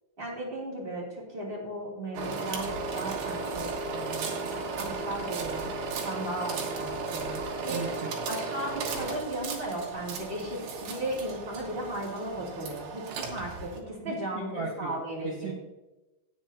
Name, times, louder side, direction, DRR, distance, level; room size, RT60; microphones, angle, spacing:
voice 1, 0.2-5.7 6.0-7.8 8.3-15.5, right 1 dB, 15° right, -4 dB, 2.2 m, -36 dB
sound 1, 2.1-13.8, right 4 dB, 90° right, 3.5 m, -35 dB
voice 2, 7.7-8.2 14.0-14.1 14.5-14.9 15.2-15.5, right 4 dB, 65° right, -1 dB, 1.5 m, -36 dB
17.5 x 7.4 x 2.8 m, 1.0 s
omnidirectional pair, 4.5 m